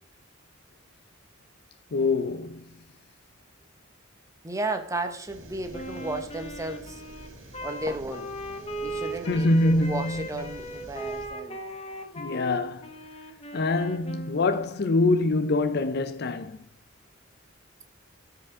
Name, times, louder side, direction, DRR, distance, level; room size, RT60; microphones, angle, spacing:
voice 1, 1.9-2.7 9.3-10.3 12.2-12.9 13.5-16.6, left 2 dB, 55° left, 0.5 m, -24 dB
voice 2, 4.4-7.0 7.6-8.3 8.8-11.6, right 2 dB, 15° right, 0.8 m, -33 dB
sound 1, 5.3-11.3, right 1 dB, 65° right, 1.6 m, -47 dB
Wind instrument woodwind instrument, 5.7-14.7, right 1 dB, 30° left, 1.0 m, -38 dB
13.5 x 4.9 x 3.7 m
head